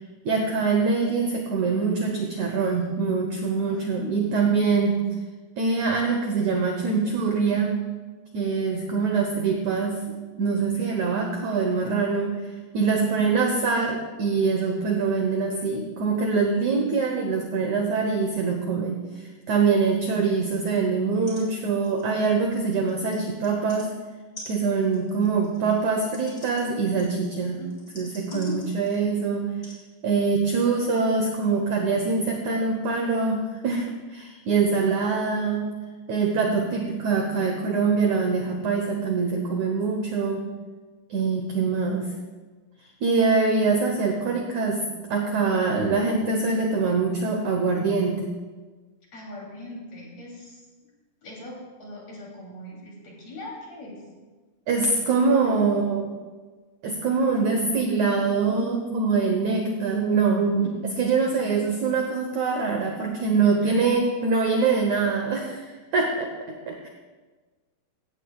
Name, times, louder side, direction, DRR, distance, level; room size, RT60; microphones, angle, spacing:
voice 1, 0.3-5.0 5.6-7.7 8.3-10.0 10.4-12.4 12.7-23.9 24.5-27.6 28.0-29.5 30.0-35.6 36.1-40.5 41.1-42.1 43.0-44.8 45.1-48.3 54.7-56.1 56.8-66.9, right 4 dB, 70° right, 2 dB, 1.8 m, -24 dB
voice 2, 3.7-4.4 13.0-13.3 27.6-27.7 28.3-28.6 45.5-45.9 49.1-50.6 51.2-54.0 55.4-55.5 63.6-63.7, left 1 dB, 40° left, -3 dB, 4.0 m, -40 dB
sound 1, 21.0-21.1 21.3-21.5 21.7-23.9 24.4-29.1 29.6-29.8 30.6-30.7, left 1 dB, 20° left, 3.3 m, -46 dB
16.5 x 15.5 x 2.4 m, 1.3 s
omnidirectional pair, 4.7 m